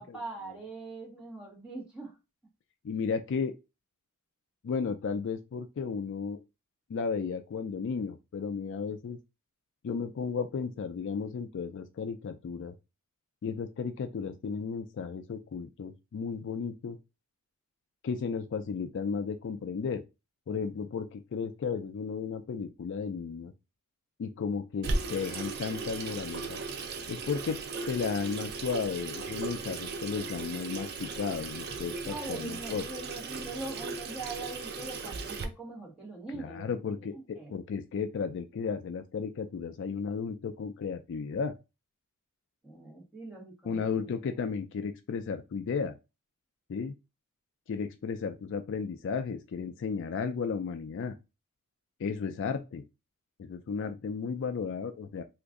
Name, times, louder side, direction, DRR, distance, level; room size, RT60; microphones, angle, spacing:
voice 1, 0.0-2.2 32.0-37.1 37.4-37.5 42.6-44.1, right 2 dB, 5° right, 1.3 m, -42 dB
voice 2, 2.8-3.5 4.6-6.4 6.9-9.2 9.8-12.7 13.4-17.0 18.0-20.0 20.5-23.5 24.2-26.6 27.1-27.6 27.9-32.8 36.3-41.6 43.6-45.9 46.7-46.9 47.7-51.2 52.0-52.8 53.4-55.2, left 5 dB, 55° left, 0.3 m, -34 dB
Water tap faucet / Sink (filling or washing), 24.8-35.4, right 4 dB, 45° right, 0.5 m, -37 dB
3.0 x 2.5 x 3.6 m
head